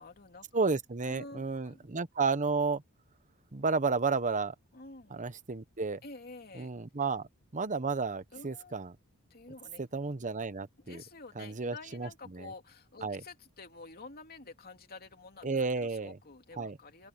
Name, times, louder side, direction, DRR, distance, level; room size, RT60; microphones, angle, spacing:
voice 1, 0.0-0.5 1.0-1.9 4.7-5.2 6.0-6.7 8.3-8.8 9.3-9.9 10.8-17.1, left 3 dB, 45° left, 2.8 m, -49 dB
voice 2, 0.5-2.8 3.5-4.5 5.1-6.0 6.6-8.9 9.9-11.0 11.4-12.1 12.3-12.5 13.0-13.2 15.4-16.2 16.6-16.8, right 4 dB, 35° right, 1.0 m, -32 dB
open air
head